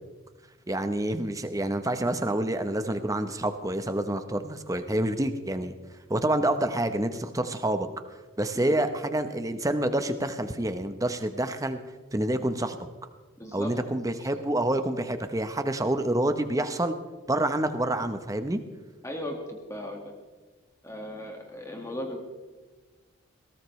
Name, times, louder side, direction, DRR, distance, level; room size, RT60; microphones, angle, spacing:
voice 1, 0.7-5.7 6.1-7.9 8.4-11.8 12.1-12.8 13.5-17.0 17.3-18.6, right 1 dB, 15° right, 9 dB, 0.8 m, -27 dB
voice 2, 13.4-13.7 19.0-20.1 20.8-22.2, left 1 dB, 15° left, 1 dB, 1.8 m, -37 dB
20.5 x 18.0 x 3.2 m, 1.3 s
head